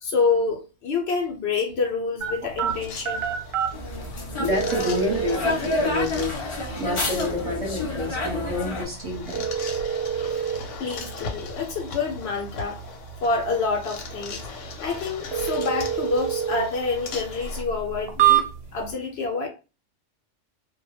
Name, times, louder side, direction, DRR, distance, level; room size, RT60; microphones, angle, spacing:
voice 1, 0.0-3.2 10.3-10.4 10.8-12.8 13.2-14.4 14.8-18.4 18.7-19.5, left 4 dB, 65° left, 0.8 m, -27 dB
sound 1, 2.2-18.9, right 10 dB, 65° right, 0.7 m, -29 dB
sound 2, 2.7-17.6, left 5 dB, 85° left, 0.9 m, -40 dB
sound 3, 3.7-8.8, left 2 dB, 40° left, 0.4 m, -29 dB
voice 2, 4.4-9.6, left 2 dB, 30° right, 0.8 m, -29 dB
2.2 x 2.1 x 2.9 m
omnidirectional pair, 1.3 m